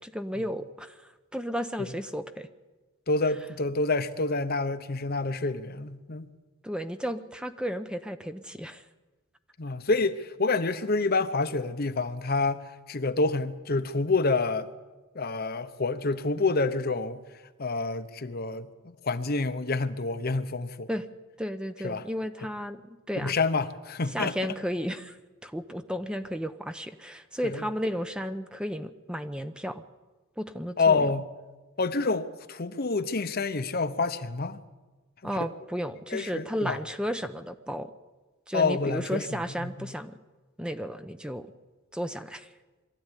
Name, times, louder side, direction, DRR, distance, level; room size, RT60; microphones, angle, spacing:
voice 1, 0.0-2.5 6.6-8.8 20.9-21.0 21.4-23.3 24.1-25.2 25.4-29.8 30.4-31.1 35.2-37.9 38.5-40.2 40.6-41.5 41.9-42.5, equal, 5° right, 0.8 m, -33 dB
voice 2, 3.1-6.3 9.6-14.7 15.1-17.2 17.6-20.9 21.8-22.0 23.2-24.3 27.4-27.6 30.8-31.3 31.8-34.6 36.1-36.8 38.5-39.3 39.6-39.9, left 3 dB, 50° left, 1.0 m, -28 dB
23.0 x 13.5 x 9.9 m
head